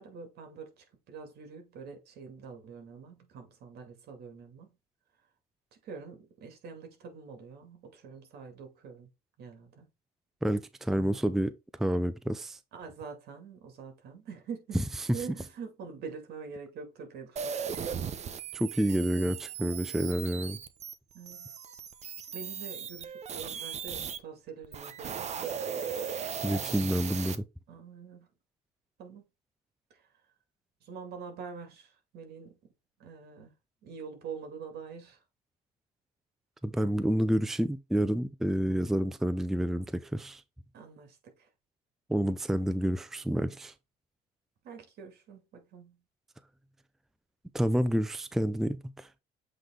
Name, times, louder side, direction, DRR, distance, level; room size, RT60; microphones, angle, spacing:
voice 1, 0.0-4.8 5.7-9.1 9.4-9.9 12.7-14.8 15.1-17.9 21.1-21.5 22.3-25.5 27.7-28.3 29.0-29.2 29.9-30.0 30.8-32.6 33.0-33.5 33.8-35.2 40.7-41.5 44.6-46.0, right 5 dB, 70° right, 2.4 m, -45 dB
voice 2, 10.4-12.6 18.5-20.6 26.4-27.4 36.6-40.4 42.1-43.7 47.5-49.1, right 1 dB, ahead, 0.4 m, -29 dB
sound 1, 17.4-24.2 24.6-27.4, right 7 dB, 40° right, 0.8 m, -37 dB
7.7 x 3.3 x 3.8 m
cardioid pair, 110°, 17 cm